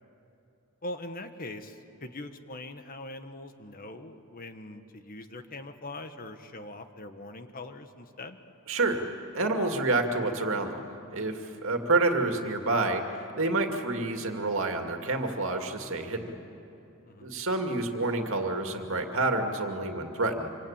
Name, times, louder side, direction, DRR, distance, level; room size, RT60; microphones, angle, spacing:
voice 1, 0.8-8.4 17.0-17.4, left 2 dB, 40° left, 8 dB, 1.4 m, -42 dB
voice 2, 8.7-9.0 9.3-10.8 11.1-13.0 13.4-16.4 17.2-20.5, right 2 dB, 65° right, 4 dB, 2.4 m, -28 dB
26.5 x 25.0 x 8.9 m, 2.9 s
head